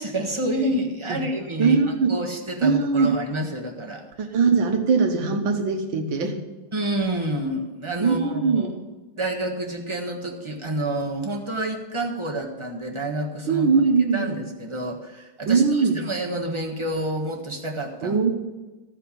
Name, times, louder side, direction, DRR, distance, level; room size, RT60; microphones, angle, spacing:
voice 1, 0.0-4.3 6.7-8.7 9.2-13.7 14.1-18.3, right 1 dB, 15° right, 0 dB, 1.3 m, -29 dB
voice 2, 1.6-2.1 2.6-3.1 4.2-6.4 8.0-8.8 13.5-14.4 15.5-16.0 18.0-18.3, right 5 dB, 75° right, 5 dB, 2.0 m, -21 dB
15.0 x 5.6 x 8.4 m, 1.2 s
omnidirectional pair, 2.2 m